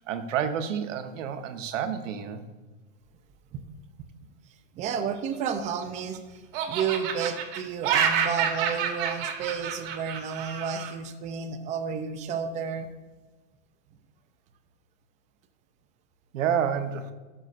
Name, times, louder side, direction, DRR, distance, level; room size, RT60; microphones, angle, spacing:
voice 1, 0.1-2.4 16.3-17.1, right 8 dB, 85° right, 8 dB, 1.0 m, -29 dB
voice 2, 4.5-12.9, right 6 dB, 20° right, 8 dB, 0.4 m, -32 dB
Laughter, 5.3-6.2 6.5-10.9, right 8 dB, 50° right, 1.2 m, -29 dB
12.5 x 6.7 x 2.5 m, 1.2 s
supercardioid pair, 150°, 37 cm